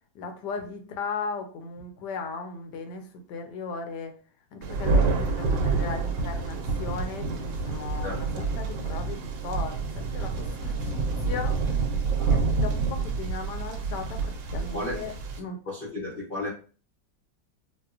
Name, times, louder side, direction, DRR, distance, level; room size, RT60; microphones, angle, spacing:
voice 1, 0.1-4.1 4.5-11.8 12.3-15.1 15.4-15.6, left 4 dB, 75° left, 5 dB, 1.2 m, -37 dB
Thunder, 4.6-15.4, right 4 dB, 80° right, 1.3 m, -28 dB
voice 2, 12.1-12.5 14.5-15.0 15.6-16.5, left 2 dB, 55° left, -4 dB, 0.6 m, -34 dB
4.3 x 2.1 x 2.4 m, 0.38 s
omnidirectional pair, 2.0 m